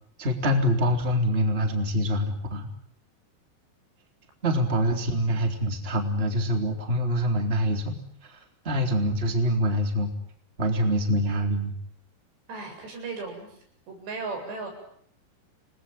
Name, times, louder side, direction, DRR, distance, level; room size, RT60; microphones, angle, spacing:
voice 1, 0.2-2.7 4.4-10.1 10.6-11.7, equal, 15° right, 4 dB, 3.6 m, -25 dB
voice 2, 12.5-13.5 13.9-14.7, right 3 dB, 90° right, 3 dB, 10.0 m, -36 dB
30.0 x 20.5 x 9.6 m, 0.67 s
omnidirectional pair, 4.8 m